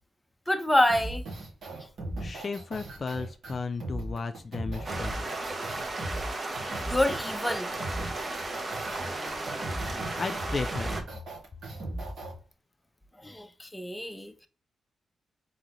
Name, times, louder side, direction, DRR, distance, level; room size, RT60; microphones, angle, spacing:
voice 1, 0.5-1.2 6.7-7.7 13.2-14.5, left 1 dB, 5° left, 0.6 m, -27 dB
sound 1, 0.9-12.3, right 1 dB, 75° right, 1.9 m, -37 dB
voice 2, 2.2-5.3 9.0-9.8 10.1-10.9, left 4 dB, 45° left, 0.4 m, -35 dB
sound 2, 4.9-11.0, right 2 dB, 40° right, 0.9 m, -35 dB
3.8 x 3.8 x 3.0 m
cardioid pair, 80°, 0 cm